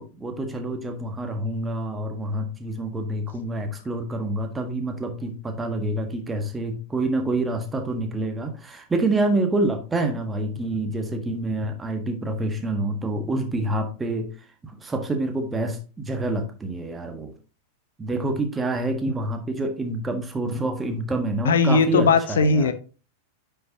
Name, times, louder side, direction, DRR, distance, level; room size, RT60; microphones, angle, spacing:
voice 1, 0.0-14.3 14.6-17.3 18.0-22.7, right 2 dB, 15° right, 6 dB, 1.5 m, -27 dB
voice 2, 21.4-22.7, left 4 dB, 65° left, 13 dB, 0.8 m, -19 dB
9.5 x 5.8 x 2.8 m, 0.34 s
figure-of-eight pair, 90°, 0 cm